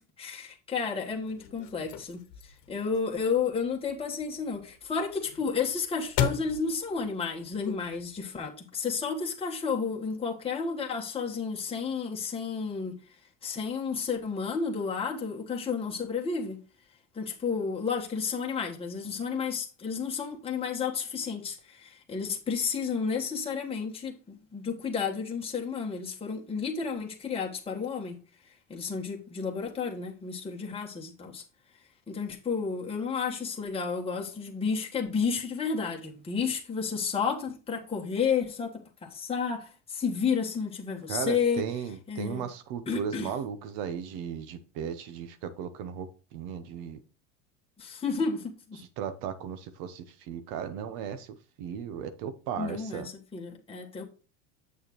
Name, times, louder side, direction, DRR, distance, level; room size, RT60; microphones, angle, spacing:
voice 1, 0.2-13.0 13.4-16.6 17.1-28.2 28.7-31.4 32.1-41.6 42.1-42.4 42.9-43.3 47.8-48.8 52.6-54.1, left 5 dB, 15° left, 1.4 m, -31 dB
sound 1, 1.1-8.2, left 8 dB, 65° left, 1.1 m, -38 dB
voice 2, 41.1-47.0 48.8-53.1, right 8 dB, 60° right, 0.9 m, -36 dB
7.3 x 6.4 x 3.0 m
supercardioid pair, 105°, 37 cm